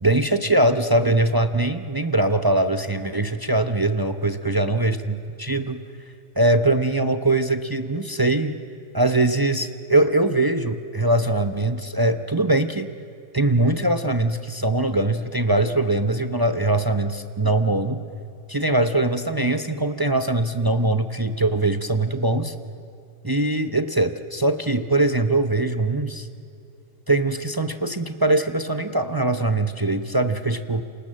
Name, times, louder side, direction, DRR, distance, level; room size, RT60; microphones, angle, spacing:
voice 1, 0.0-5.8 6.4-8.6 8.9-12.9 13.3-18.0 18.5-22.5 23.2-26.3 27.1-30.8, right 2 dB, 25° right, 9 dB, 0.5 m, -22 dB
29.0 x 26.5 x 7.6 m, 2.6 s
omnidirectional pair, 1.6 m